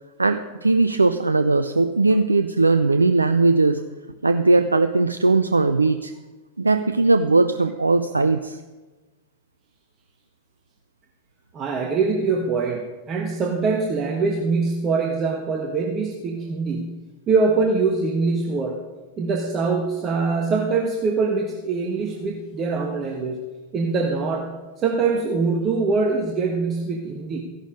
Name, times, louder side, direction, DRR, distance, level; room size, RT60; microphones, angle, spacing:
voice 1, 0.2-3.8 4.2-6.1 6.6-8.6, right 3 dB, 80° right, 10 dB, 0.5 m, -19 dB
voice 2, 11.5-17.0 17.3-18.8 19.2-23.4 23.7-27.4, right 4 dB, 30° right, 1 dB, 1.4 m, -23 dB
15.0 x 11.5 x 5.2 m, 1.2 s
figure-of-eight pair, 90°, 0 cm